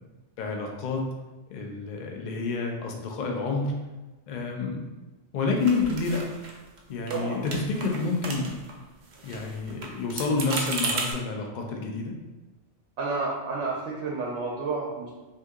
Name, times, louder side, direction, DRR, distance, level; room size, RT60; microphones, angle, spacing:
voice 1, 0.4-1.0 1.5-3.7 4.3-4.8 5.3-6.2 6.9-8.5 9.2-12.1, left 4 dB, 55° left, 1 dB, 0.5 m, -29 dB
sound 1, 5.6-6.8 7.1-7.2 7.5-8.7 9.0-11.1, right 3 dB, 55° right, 0.5 m, -34 dB
voice 2, 7.1-7.5 13.0-15.1, right 3 dB, 75° right, -3 dB, 0.9 m, -30 dB
2.7 x 2.7 x 3.5 m, 1.2 s
omnidirectional pair, 1.2 m